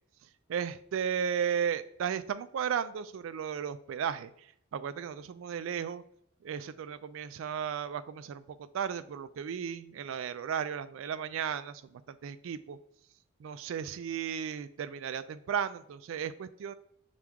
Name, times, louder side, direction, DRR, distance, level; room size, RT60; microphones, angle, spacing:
voice 1, 0.5-6.0 6.4-12.8 13.4-16.8, right 7 dB, 70° right, 14 dB, 0.3 m, -35 dB
6.0 x 2.3 x 3.5 m, 0.72 s
head